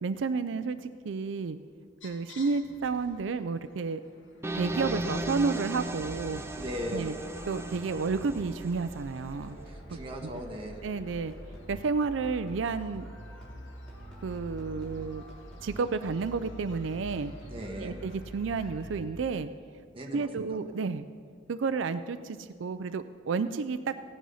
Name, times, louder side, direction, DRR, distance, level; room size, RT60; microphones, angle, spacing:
voice 1, 0.0-1.6 2.0-4.0 4.5-6.4 6.9-7.2 7.5-9.6 9.9-10.0 10.8-11.3 11.7-13.0 14.2-15.2 15.6-17.3 17.8-19.5 20.1-21.1 21.5-23.9, right 4 dB, 85° right, 11 dB, 0.4 m, -31 dB
sound 1, 2.0-18.8, left 2 dB, 90° left, 1.8 m, -57 dB
sound 2, 4.4-9.3, right 2 dB, 15° right, 0.6 m, -36 dB
sound 3, 4.5-19.4, right 1 dB, 5° left, 3.1 m, -45 dB
voice 2, 6.5-7.2 9.7-10.8 17.5-18.0 19.9-20.6, equal, 30° right, 1 dB, 1.4 m, -38 dB
16.0 x 10.0 x 5.6 m, 2.2 s
head